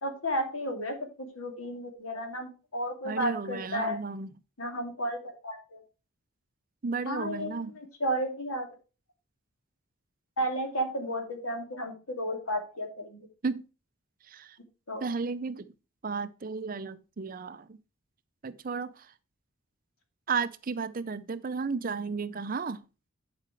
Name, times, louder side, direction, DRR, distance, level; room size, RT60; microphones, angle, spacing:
voice 1, 0.0-4.0 4.6-5.8 7.1-8.7 10.4-13.2 14.9-15.0, equal, 85° left, 2.5 m, -33 dB
voice 2, 3.1-4.3 6.8-7.7 13.4-13.6 14.3-14.6 15.0-15.7 16.0-17.8 18.4-19.1 20.3-22.8, right 5 dB, 40° right, 0.5 m, -33 dB
10.5 x 5.0 x 4.6 m
head